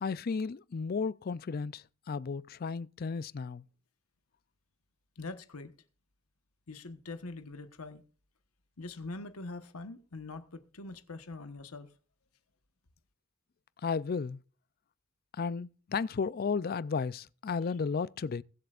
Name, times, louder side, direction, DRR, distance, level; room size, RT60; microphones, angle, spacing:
voice 1, 0.0-3.6 13.8-14.4 15.4-18.4, left 5 dB, 45° left, 0.4 m, -34 dB
voice 2, 5.2-5.7 6.7-8.0 8.8-11.9, left 3 dB, 85° left, 1.2 m, -43 dB
22.5 x 7.8 x 2.5 m
head